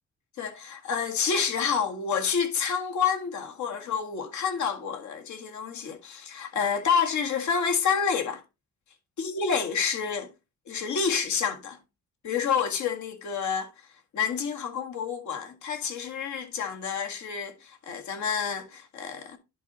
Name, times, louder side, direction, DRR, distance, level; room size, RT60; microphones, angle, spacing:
voice 1, 0.4-8.4 9.2-10.3 10.7-11.8 12.2-13.7 14.1-19.4, left 6 dB, 70° left, 1.8 m, -28 dB
10.5 x 4.4 x 3.9 m
cardioid pair, 90°, 30 cm